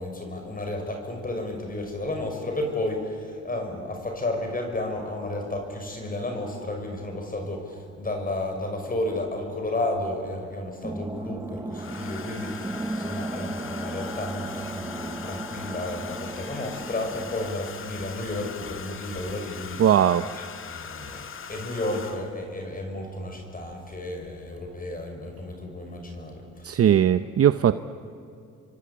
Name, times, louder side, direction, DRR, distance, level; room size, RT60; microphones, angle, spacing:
voice 1, 0.0-19.8 20.3-26.8, left 1 dB, 30° left, 3 dB, 5.9 m, -32 dB
Domestic sounds home sounds, 10.1-10.3 11.7-22.5 23.7-24.0 24.2-24.6, left 7 dB, 45° left, 1.8 m, -40 dB
sound 1, 10.8-17.5, right 2 dB, 10° right, 0.8 m, -35 dB
voice 2, 19.8-20.3 26.6-27.8, right 10 dB, 50° right, 12 dB, 0.8 m, -19 dB
27.5 x 23.5 x 8.6 m, 2.6 s
cardioid pair, 90°, 30 cm